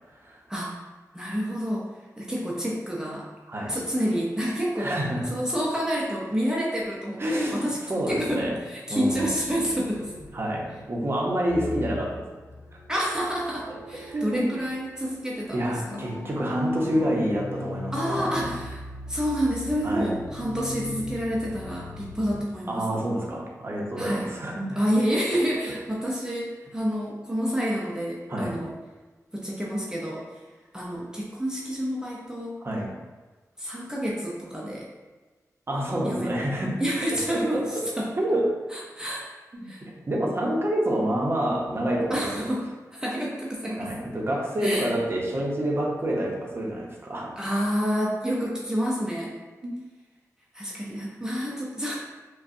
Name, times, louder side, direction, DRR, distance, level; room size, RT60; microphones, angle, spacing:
voice 1, 1.1-1.9 2.2-3.3 3.7-4.9 5.3-7.8 8.1-10.1 12.9-16.1 17.9-23.0 24.0-24.3 24.8-28.7 29.3-30.4 30.7-32.5 33.6-34.9 36.0-36.3 36.8-38.1 38.7-39.3 39.6-39.9 42.1-42.6 42.9-43.9 44.6-44.9 47.4-49.4 50.5-52.0, equal, 10° right, -5 dB, 0.7 m, -28 dB
voice 2, 3.5-3.8 4.8-5.2 7.2-7.6 7.9-8.6 8.9-9.3 10.3-12.2 14.1-14.5 15.5-18.5 19.8-20.1 22.7-24.6 28.3-28.5 32.6-32.9 35.7-36.7 37.3-37.9 38.2-38.6 39.5-39.7 40.1-42.5 43.8-47.3, right 1 dB, 40° right, -2 dB, 0.8 m, -27 dB
sound 1, 9.1-22.4, left 2 dB, 60° left, 0.9 m, -40 dB
5.0 x 2.3 x 2.6 m, 1.3 s
wide cardioid pair, 75°, 6 cm